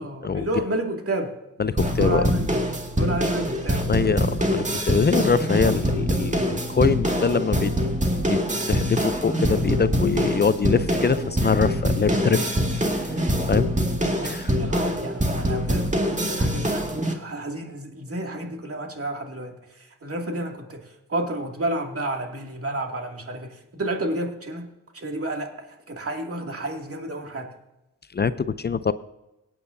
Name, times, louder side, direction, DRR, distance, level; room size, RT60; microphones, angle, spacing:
voice 1, 0.0-1.3 2.0-2.5 3.0-3.9 14.2-24.7 24.9-27.5, right 1 dB, 45° right, 3 dB, 2.5 m, -31 dB
voice 2, 1.6-2.2 3.9-7.7 8.3-8.4 8.7-12.6 12.9-13.1 13.5-13.7 14.2-14.5 28.1-28.9, left 5 dB, 30° left, 14 dB, 0.5 m, -23 dB
sound 1, 1.8-17.1, equal, 20° right, 2.0 m, -24 dB
18.0 x 8.8 x 2.7 m, 0.94 s
cardioid pair, 55°, 32 cm